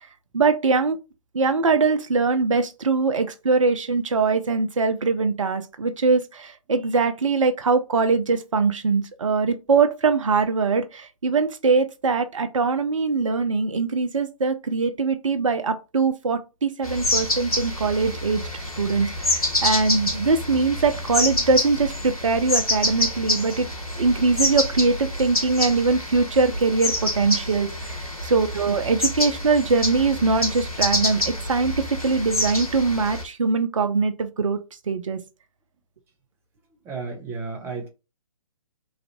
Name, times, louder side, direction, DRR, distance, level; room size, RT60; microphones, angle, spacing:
voice 1, 0.3-1.0 1.3-23.7 24.0-34.6 34.9-35.2, right 4 dB, 60° right, 0.5 m, -22 dB
sound 1, 16.8-33.2, left 1 dB, 80° left, 1.1 m, -27 dB
voice 2, 36.8-37.9, right 4 dB, 10° right, 0.8 m, -32 dB
3.2 x 2.6 x 4.2 m
figure-of-eight pair, 130°, 18 cm